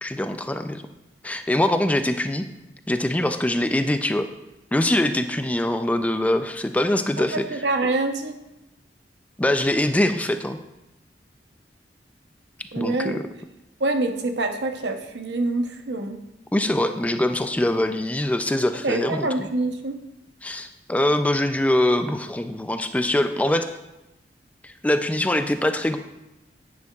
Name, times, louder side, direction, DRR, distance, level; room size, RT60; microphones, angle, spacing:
voice 1, 0.0-0.8 1.2-2.4 2.9-4.3 4.7-7.4 9.4-10.6 12.8-13.2 16.5-19.3 20.4-23.7 24.6-26.0, left 1 dB, 10° left, 8 dB, 0.3 m, -23 dB
voice 2, 7.3-8.4 12.7-13.2 13.8-16.2 18.8-20.0, right 2 dB, 80° right, 6 dB, 0.8 m, -25 dB
10.5 x 9.6 x 2.4 m, 0.95 s
head